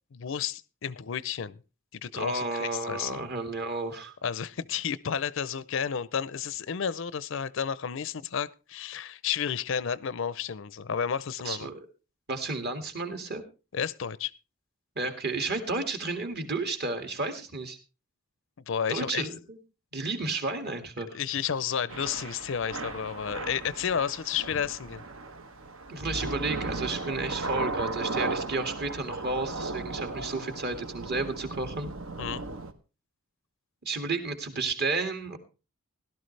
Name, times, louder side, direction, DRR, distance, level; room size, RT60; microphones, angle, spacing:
voice 1, 0.1-1.6 2.0-3.3 4.2-11.7 13.7-14.3 18.7-19.3 21.1-25.0 32.2-32.4, left 7 dB, 65° left, 0.5 m, -31 dB
voice 2, 2.1-4.1 11.4-11.8 12.3-13.4 15.0-17.8 18.9-19.6 19.9-21.2 25.9-31.9 33.8-35.4, right 3 dB, 50° right, 2.1 m, -32 dB
Thunder / Rain, 21.9-32.7, right 3 dB, 70° right, 1.2 m, -36 dB
17.0 x 12.0 x 3.3 m
head